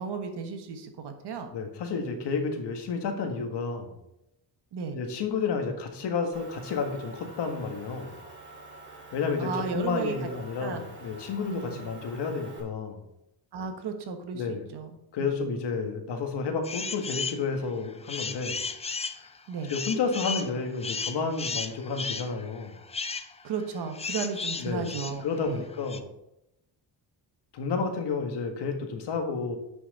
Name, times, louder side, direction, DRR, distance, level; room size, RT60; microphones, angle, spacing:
voice 1, 0.0-1.5 4.7-5.0 9.4-10.2 10.6-10.8 11.4-11.9 13.5-14.9 15.2-15.4 19.5-19.7 23.4-25.7, right 5 dB, 75° right, 6 dB, 1.4 m, -34 dB
voice 2, 1.5-3.9 4.9-8.1 9.1-13.0 14.3-14.7 15.1-18.6 19.7-22.8 24.6-24.9 25.2-26.1 27.5-29.6, left 4 dB, 75° left, 4 dB, 1.7 m, -31 dB
Motor vehicle (road) / Engine, 6.3-12.6, right 2 dB, 25° right, 2.6 m, -47 dB
sound 1, 16.6-17.4 17.8-26.0, left 4 dB, 15° left, 0.3 m, -35 dB
9.8 x 6.2 x 4.2 m, 0.85 s
wide cardioid pair, 165°, 41 cm